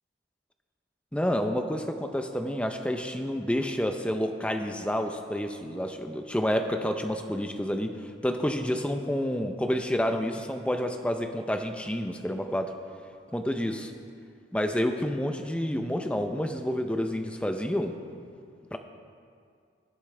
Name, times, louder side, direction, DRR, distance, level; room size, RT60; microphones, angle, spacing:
voice 1, 1.1-12.7 13.3-13.9 14.5-17.9 18.7-18.8, equal, 5° left, 6 dB, 0.5 m, -29 dB
19.5 x 8.3 x 3.3 m, 2.2 s
head